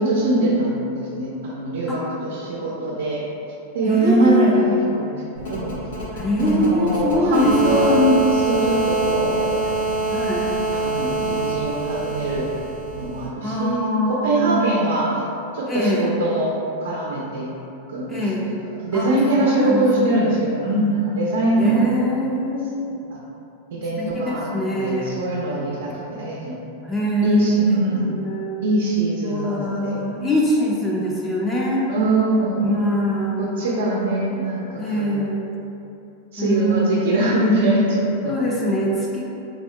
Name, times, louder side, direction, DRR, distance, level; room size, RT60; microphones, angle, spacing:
voice 1, 0.0-3.2 3.7-5.8 6.4-9.5 10.7-12.5 12.9-15.1 15.5-16.5 16.8-17.5 17.9-18.5 18.8-21.8 23.7-24.5 24.7-26.5 27.2-28.2 28.6-30.0 31.9-32.7 33.4-35.2 36.3-38.4, right 1 dB, 85° right, -4 dB, 0.6 m, -22 dB
voice 2, 3.8-4.7 6.1-8.0 10.1-10.5 13.4-14.7 15.7-16.1 18.1-18.5 18.9-20.1 21.6-22.9 24.0-25.2 26.8-27.6 28.0-28.6 29.3-31.9 32.6-33.6 34.8-35.6 36.4-37.5 38.3-39.3, equal, 15° left, -4 dB, 0.4 m, -23 dB
sound 1, 5.4-13.3, right 2 dB, 90° left, 1.3 m, -25 dB
3.5 x 2.1 x 3.6 m, 2.8 s
supercardioid pair, 140°, 0 cm